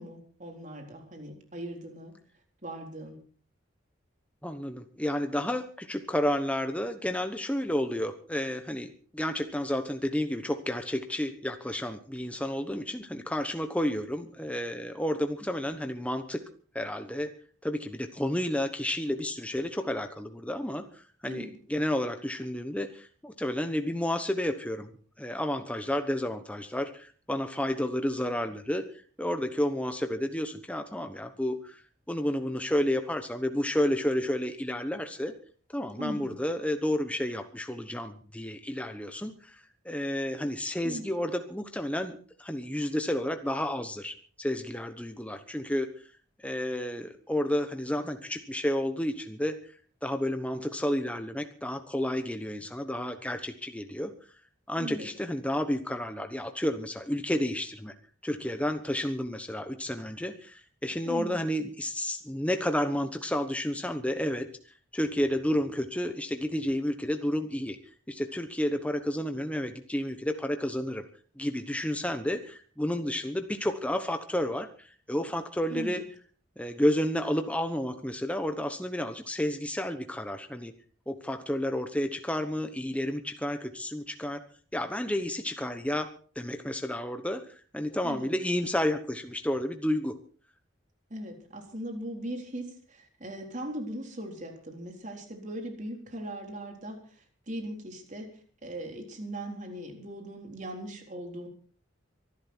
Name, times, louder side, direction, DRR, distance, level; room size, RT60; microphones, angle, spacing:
voice 1, 0.0-2.1 2.6-3.2 21.3-21.5 36.0-36.4 40.8-41.1 54.7-55.1 61.0-61.4 75.7-76.0 88.0-88.3 91.1-98.3 98.6-101.5, right 1 dB, 40° right, 3 dB, 4.0 m, -39 dB
voice 2, 4.4-16.4 16.7-24.9 25.2-28.8 29.2-31.8 32.1-35.3 35.7-46.1 46.4-49.7 50.0-54.1 54.7-57.9 58.2-67.8 68.1-71.0 71.4-76.0 76.6-80.7 81.1-84.4 84.7-90.2, left 1 dB, 5° left, 7 dB, 1.0 m, -31 dB
24.0 x 12.0 x 4.4 m, 0.43 s
head